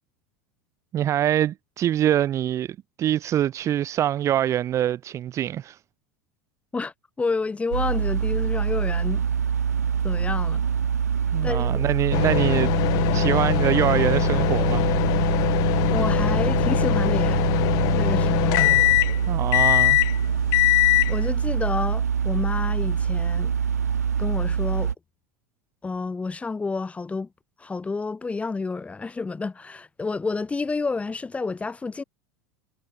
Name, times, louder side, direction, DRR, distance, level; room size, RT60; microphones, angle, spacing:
voice 1, 0.9-5.8 11.3-12.7 13.1-14.9 19.3-20.0, right 11 dB, 35° right, 1.1 m, -24 dB
voice 2, 6.7-9.2 10.0-10.6 11.4-11.9 15.9-17.4 17.9-18.7 21.1-23.5 24.2-24.9 25.8-27.3 27.6-32.0, left 4 dB, 15° left, 3.3 m, -29 dB
sound 1, 7.7-24.9, right 7 dB, 85° right, 0.6 m, -25 dB
sound 2, 12.1-21.3, left 23 dB, 45° left, 0.3 m, -22 dB
figure-of-eight pair, 80°, 8 cm